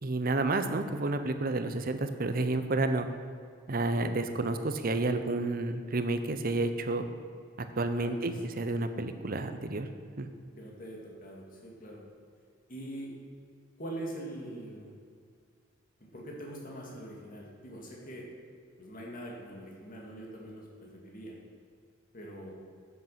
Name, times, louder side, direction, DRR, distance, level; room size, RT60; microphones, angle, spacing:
voice 1, 0.0-3.1 3.7-7.1 7.8-9.9 10.2-10.3, right 2 dB, 45° right, 9 dB, 0.7 m, -30 dB
voice 2, 8.0-8.4 10.6-12.0 12.7-13.1 13.8-14.9 16.0-18.3 18.8-21.4 22.1-22.5, right 1 dB, 45° left, -2 dB, 2.4 m, -43 dB
9.4 x 8.1 x 5.8 m, 2.2 s
head